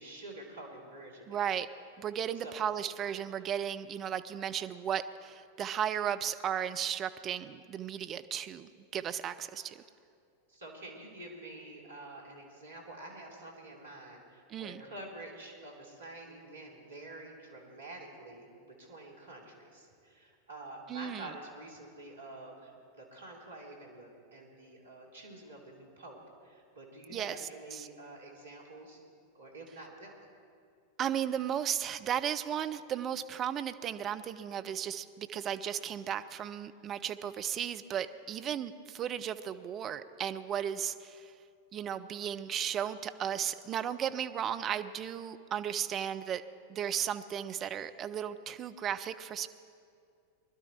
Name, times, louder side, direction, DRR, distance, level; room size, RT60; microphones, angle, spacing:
voice 1, 0.0-1.4 2.4-2.6 10.5-29.0 29.3-30.3, right 2 dB, 70° right, -1 dB, 2.9 m, -48 dB
voice 2, 1.3-1.7 2.0-9.8 14.5-14.8 20.9-21.3 27.1-27.9 31.0-41.3 41.7-46.4 46.7-49.5, right 9 dB, 30° right, 10 dB, 0.6 m, -35 dB
21.0 x 12.0 x 4.5 m, 2.4 s
figure-of-eight pair, 90°, 0 cm